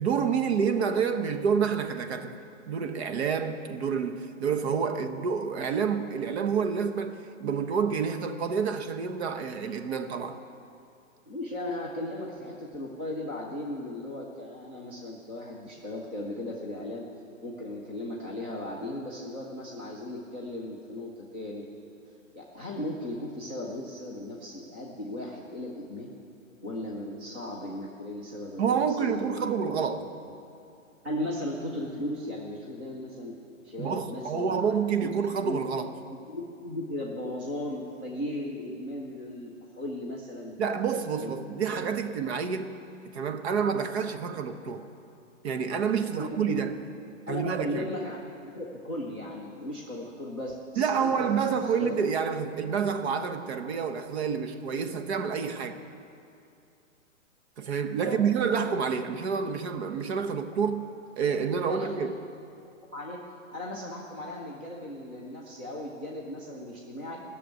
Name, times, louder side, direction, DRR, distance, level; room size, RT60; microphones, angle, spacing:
voice 1, 0.0-2.4 2.7-10.4 28.6-30.1 33.8-35.9 40.6-42.8 43.1-44.9 45.4-46.8 47.3-47.9 50.8-55.8 57.6-60.9 61.2-62.2, right 6 dB, 50° right, 1.0 m, -28 dB
voice 2, 11.3-17.1 17.4-21.7 22.3-26.1 26.6-29.6 30.0-30.1 31.0-33.3 33.6-35.1 35.4-35.6 36.1-40.6 41.2-41.3 41.7-41.9 46.1-46.6 47.3-52.0 58.0-58.2 61.6-62.0 62.9-63.2 63.5-67.2, left 1 dB, 10° right, 0.3 m, -37 dB
14.0 x 6.9 x 9.1 m
hypercardioid pair, 140°, 40 cm